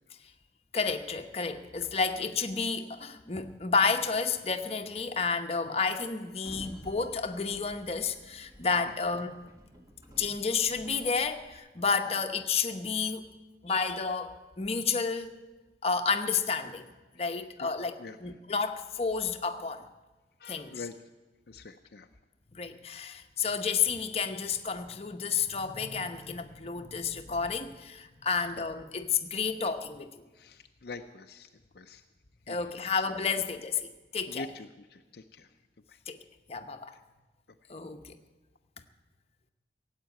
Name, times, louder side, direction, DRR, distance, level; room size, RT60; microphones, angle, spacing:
voice 1, 0.7-9.3 10.2-13.2 13.6-15.3 15.8-16.9 17.1-19.8 20.5-20.8 22.5-30.2 32.5-34.5 36.1-36.2 36.5-37.0 37.7-38.2, left 5 dB, 35° left, 6 dB, 0.9 m, -31 dB
Sliding door, 6.3-11.5, equal, 20° right, 1.5 m, -51 dB
voice 2, 20.4-20.9 21.5-22.1 30.3-31.5 31.7-32.0 32.5-32.9 34.3-35.5 35.9-36.0, left 3 dB, 60° left, 5 dB, 0.5 m, -45 dB
16.5 x 8.3 x 9.2 m, 1.2 s
head